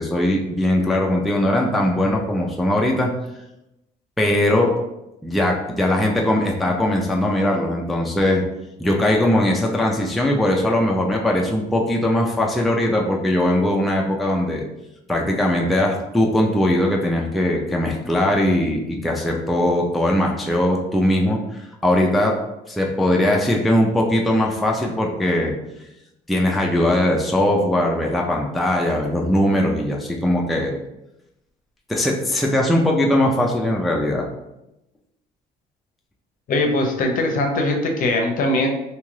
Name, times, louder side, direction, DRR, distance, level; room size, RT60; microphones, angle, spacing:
voice 1, 0.0-3.1 4.2-4.8 5.2-8.4 8.8-14.6 15.1-22.4 22.7-25.5 26.3-30.7 31.9-34.3, left 1 dB, ahead, -1 dB, 0.3 m, -20 dB
voice 2, 36.5-38.7, left 2 dB, 55° left, 2 dB, 0.6 m, -21 dB
2.7 x 2.4 x 3.1 m, 0.91 s
cardioid pair, 110°, 17 cm